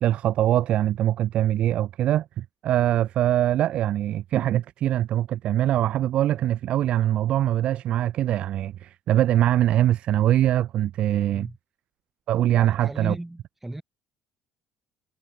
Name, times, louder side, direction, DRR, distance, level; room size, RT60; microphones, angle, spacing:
voice 1, 0.0-11.5 12.3-13.1, right 12 dB, 60° right, 0.6 m, -23 dB
voice 2, 12.5-13.8, right 1 dB, 10° right, 2.8 m, -35 dB
supercardioid pair, 90°, 2 cm